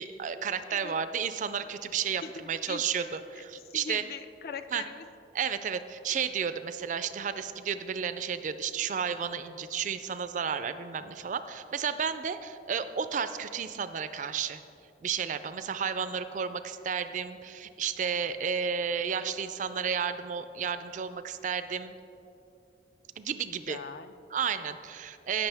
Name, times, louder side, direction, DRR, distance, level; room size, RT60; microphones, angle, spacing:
voice 1, 0.0-4.0 4.7-4.8 5.3-14.6 15.0-21.9 23.2-23.8 24.3-25.5, right 7 dB, 45° right, 12 dB, 0.3 m, -32 dB
voice 2, 2.2-3.0 3.4-5.1 23.7-24.1, left 5 dB, 55° left, 11 dB, 0.4 m, -42 dB
16.0 x 6.1 x 3.4 m, 2.8 s
head